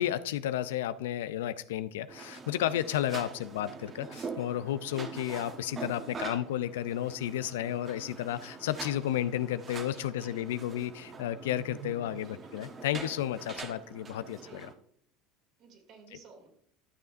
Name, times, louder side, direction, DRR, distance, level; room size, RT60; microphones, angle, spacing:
voice 1, 0.0-14.7, left 12 dB, 80° left, 14 dB, 0.4 m, -32 dB
sound 1, 2.1-14.7, right 5 dB, 35° right, 1.2 m, -44 dB
voice 2, 10.2-10.5 12.1-12.8 14.3-14.7 15.6-16.5, right 4 dB, 55° right, 2 dB, 2.6 m, -55 dB
12.5 x 6.8 x 2.6 m, 0.63 s
hypercardioid pair, 85°, 0 cm